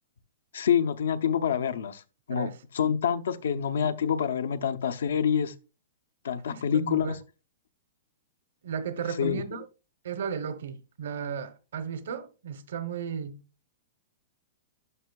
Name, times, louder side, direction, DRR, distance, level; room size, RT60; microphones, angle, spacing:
voice 1, 0.5-2.0 2.3-5.5 6.2-7.2 9.2-9.4, left 8 dB, 85° left, 0.7 m, -27 dB
voice 2, 6.5-7.2 8.6-9.6 10.0-13.4, right 7 dB, 75° right, 0.9 m, -35 dB
11.0 x 5.8 x 2.3 m
hypercardioid pair, 155°, 0 cm